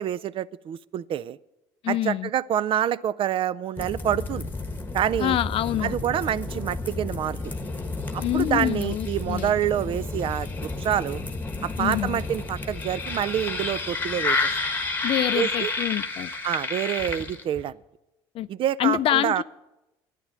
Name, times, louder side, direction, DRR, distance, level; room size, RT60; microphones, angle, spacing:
voice 1, 0.0-1.4 1.9-4.4 4.9-5.4 5.8-7.4 8.1-11.2 11.6-14.4 15.3-15.7 16.4-17.7 18.5-19.4, right 10 dB, 50° right, 0.4 m, -27 dB
voice 2, 1.8-2.3 5.2-5.9 8.2-9.5 11.8-12.2 15.0-16.3 18.3-18.5 18.8-19.4, left 13 dB, 55° left, 0.4 m, -26 dB
sound 1, 3.8-17.7, left 3 dB, 15° left, 1.3 m, -31 dB
11.5 x 9.2 x 7.5 m
supercardioid pair, 85°, 11 cm